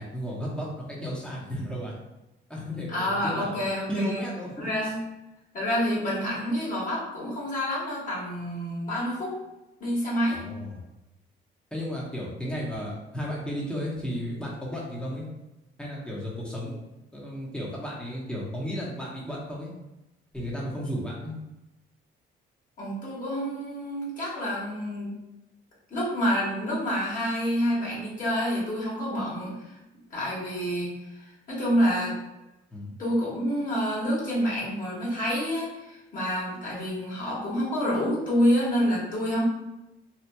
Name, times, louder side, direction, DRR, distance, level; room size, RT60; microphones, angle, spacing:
voice 1, 0.0-1.9 2.5-4.9 10.3-10.8 11.7-15.3 15.8-16.8 17.1-19.7 20.3-21.3 32.7-33.0, equal, 5° left, -5 dB, 0.9 m, -34 dB
voice 2, 2.9-4.3 4.6-5.0 5.5-9.3 9.8-10.4 22.8-25.1 25.9-29.7 30.1-32.2 33.0-39.4, equal, 40° left, -7 dB, 1.4 m, -28 dB
2.8 x 2.5 x 2.2 m, 0.96 s
cardioid pair, 90°, 20 cm